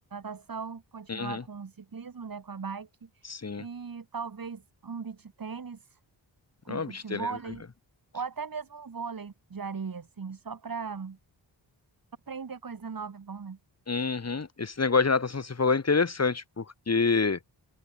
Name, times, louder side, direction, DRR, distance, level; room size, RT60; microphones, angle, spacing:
voice 1, 0.1-3.3 3.6-6.0 6.6-7.6 8.1-11.2 12.3-13.6, right 5 dB, 50° right, 2.7 m, -38 dB
voice 2, 1.1-1.4 3.3-3.6 6.7-7.3 13.9-17.4, left 4 dB, 35° left, 2.0 m, -27 dB
cardioid pair, 55°, 45 cm